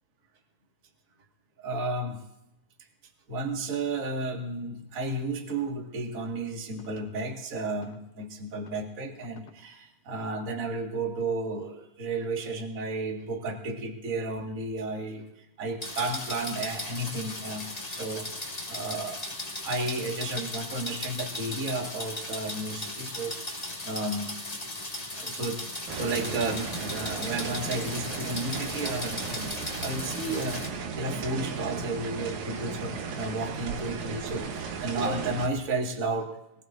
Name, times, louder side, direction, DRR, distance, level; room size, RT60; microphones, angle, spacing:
voice 1, 1.6-2.2 3.3-19.2 19.6-24.3 25.2-29.5 29.8-36.3, right 2 dB, 40° right, 1 dB, 1.1 m, -33 dB
sound 1, 5.5-5.7 6.8-7.0 7.8-8.0 8.6-8.8 9.2-9.6, left 6 dB, 70° left, 3.6 m, -51 dB
sound 2, 15.8-30.7, left 1 dB, 15° left, 1.6 m, -37 dB
sound 3, 25.9-35.5, right 5 dB, 65° right, 1.9 m, -35 dB
22.5 x 19.5 x 2.6 m, 0.86 s
omnidirectional pair, 4.7 m